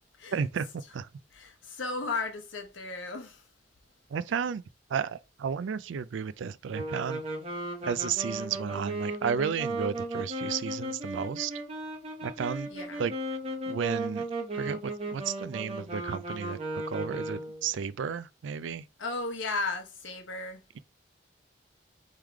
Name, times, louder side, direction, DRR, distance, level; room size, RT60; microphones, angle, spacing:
voice 1, 0.3-1.1 4.1-4.6 4.9-7.2 7.8-11.5 12.2-12.7 13.0-13.1 13.7-14.3 14.5-18.8, right 7 dB, 80° right, 0.4 m, -33 dB
voice 2, 1.8-3.3 12.7-13.1 19.0-20.6, left 3 dB, 90° left, 1.0 m, -34 dB
sound 1, 6.7-17.7, right 1 dB, 30° right, 1.0 m, -36 dB
3.7 x 3.2 x 4.5 m
head